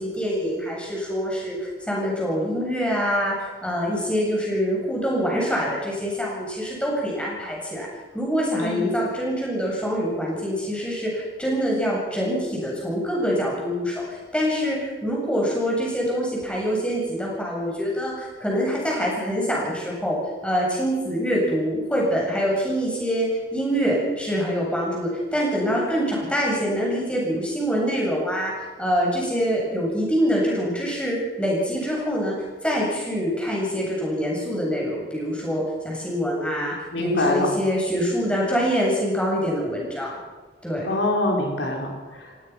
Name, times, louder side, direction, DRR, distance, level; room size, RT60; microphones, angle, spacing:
voice 1, 0.0-7.9 8.1-20.2 20.4-28.5 28.8-32.3 32.6-40.2 40.6-40.9, equal, 5° left, -3 dB, 8.0 m, -25 dB
voice 2, 36.9-37.5 40.8-41.9 42.2-42.3, left 1 dB, 90° left, 0 dB, 4.6 m, -24 dB
28.5 x 17.5 x 6.1 m, 1.3 s
head